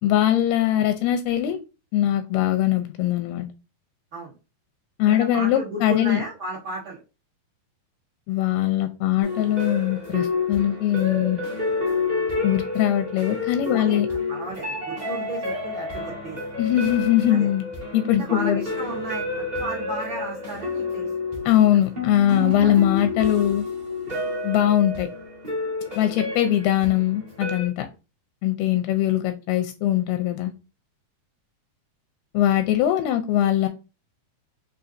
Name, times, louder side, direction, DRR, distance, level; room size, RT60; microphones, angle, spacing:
voice 1, 0.0-1.6 1.9-3.5 5.0-6.2 8.3-11.4 12.4-14.1 16.6-17.6 17.9-18.6 21.5-23.6 24.4-25.1 26.0-27.9 28.4-30.5 32.3-33.7, left 12 dB, 85° left, 7 dB, 2.4 m, -21 dB
voice 2, 5.0-7.0 13.7-16.5 17.3-17.5 18.1-21.1 21.7-21.8 22.6-22.8, right 2 dB, 75° right, -7 dB, 1.1 m, -34 dB
sound 1, 9.2-27.7, left 3 dB, 45° right, 0.5 m, -29 dB
6.0 x 2.6 x 2.5 m, 0.29 s
omnidirectional pair, 4.3 m